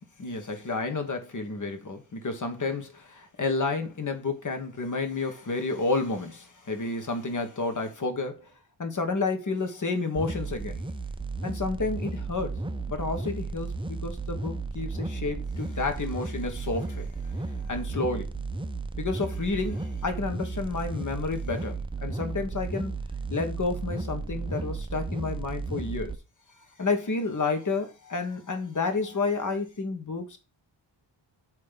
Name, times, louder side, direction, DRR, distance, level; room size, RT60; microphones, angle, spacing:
voice 1, 0.2-8.5 8.8-10.8 11.4-17.1 17.7-18.4 19.0-22.9 23.3-26.2 26.8-30.4, left 3 dB, 40° left, 1.5 m, -30 dB
sound 1, 10.2-26.2, right 3 dB, 10° right, 0.4 m, -34 dB
8.5 x 3.3 x 5.8 m
wide cardioid pair, 170°, 48 cm